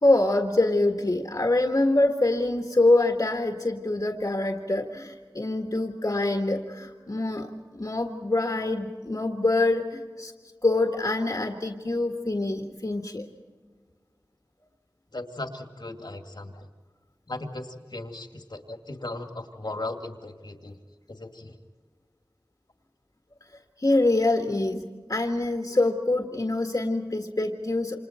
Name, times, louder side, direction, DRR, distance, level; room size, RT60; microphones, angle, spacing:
voice 1, 0.0-7.5 7.7-10.3 10.6-13.3 23.8-28.0, left 2 dB, 50° left, 3 dB, 1.7 m, -25 dB
voice 2, 15.1-16.7 17.3-20.8 21.1-21.6, left 2 dB, 65° left, 5 dB, 2.3 m, -37 dB
28.5 x 27.0 x 4.4 m, 1.5 s
wide cardioid pair, 50°, 8 cm